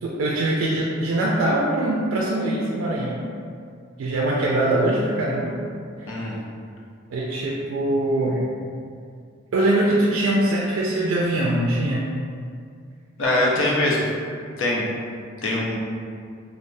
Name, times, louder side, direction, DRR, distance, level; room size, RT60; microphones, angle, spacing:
voice 1, 0.0-3.2 4.0-5.6 6.0-6.1 7.1-8.4 9.5-12.1, right 1 dB, 80° right, -4 dB, 0.3 m, -22 dB
voice 2, 13.2-14.0 14.6-14.8 15.4-15.8, left 1 dB, 80° left, -4 dB, 0.6 m, -22 dB
3.2 x 2.0 x 2.6 m, 2.2 s
head